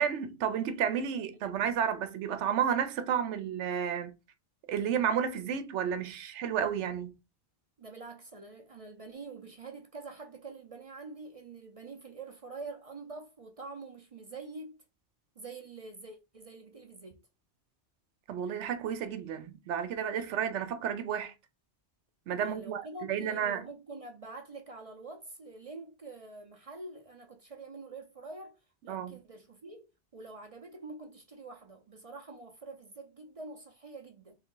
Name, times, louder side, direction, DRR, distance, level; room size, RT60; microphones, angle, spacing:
voice 1, 0.0-4.1 4.7-7.1 18.3-21.3 22.3-23.7 28.9-29.1, right 8 dB, 90° right, 0.9 m, -31 dB
voice 2, 7.8-14.8 15.4-17.2 22.4-34.4, right 3 dB, 40° right, 0.5 m, -46 dB
3.5 x 3.3 x 3.7 m
omnidirectional pair, 1.2 m